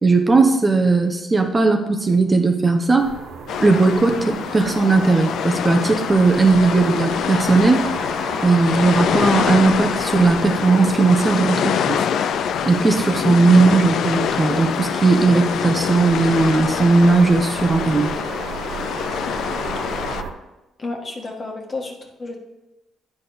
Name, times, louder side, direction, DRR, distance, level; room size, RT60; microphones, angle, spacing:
voice 1, 0.0-3.1 3.6-7.9 8.4-12.0 12.6-18.1, right 3 dB, 25° right, 4 dB, 0.8 m, -17 dB
sound 1, 3.0-20.3, right 5 dB, 75° right, 0.9 m, -34 dB
sound 2, 3.5-20.2, left 8 dB, 70° left, 0.3 m, -25 dB
voice 2, 20.8-22.4, left 3 dB, 40° left, 1 dB, 1.5 m, -31 dB
9.7 x 4.3 x 5.1 m, 1.0 s
cardioid pair, 90°, 0 cm